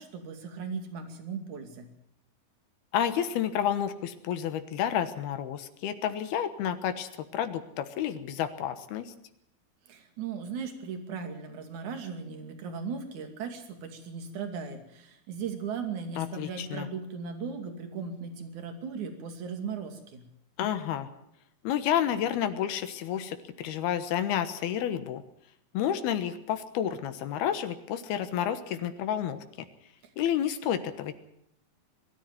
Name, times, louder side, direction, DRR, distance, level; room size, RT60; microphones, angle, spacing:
voice 1, 0.0-1.9 9.9-20.3, right 5 dB, 55° right, 6 dB, 3.7 m, -37 dB
voice 2, 2.9-9.1 16.2-16.9 20.6-21.1 21.6-25.2 25.7-29.4 30.2-31.1, left 10 dB, 80° left, 10 dB, 3.2 m, -30 dB
21.5 x 13.5 x 9.2 m, 0.77 s
omnidirectional pair, 4.5 m